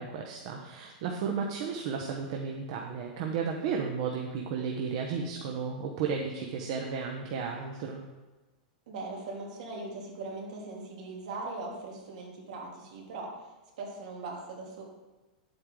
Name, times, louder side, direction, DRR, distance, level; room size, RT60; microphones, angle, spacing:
voice 1, 0.0-8.0, right 6 dB, 45° right, 1 dB, 1.0 m, -33 dB
voice 2, 8.9-14.8, right 3 dB, 60° right, -2 dB, 2.9 m, -40 dB
9.9 x 8.0 x 3.8 m, 1.2 s
supercardioid pair, 165°, 4 cm